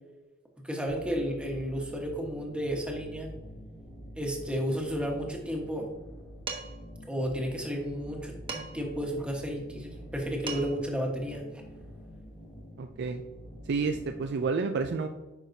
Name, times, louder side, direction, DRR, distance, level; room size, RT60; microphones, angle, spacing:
voice 1, 0.6-3.3 4.1-5.9 7.1-11.4, equal, 5° right, 0 dB, 1.3 m, -32 dB
sound 1, 0.9-14.4, equal, 20° left, 1.6 m, -47 dB
Dishes pots and pans, 6.5-6.9 8.5-9.0 10.1-10.2 10.5-10.9, right 4 dB, 25° right, 1.1 m, -38 dB
voice 2, 12.8-13.2 13.7-15.1, right 4 dB, 55° right, 6 dB, 0.4 m, -30 dB
9.1 x 5.8 x 2.7 m, 1.1 s
head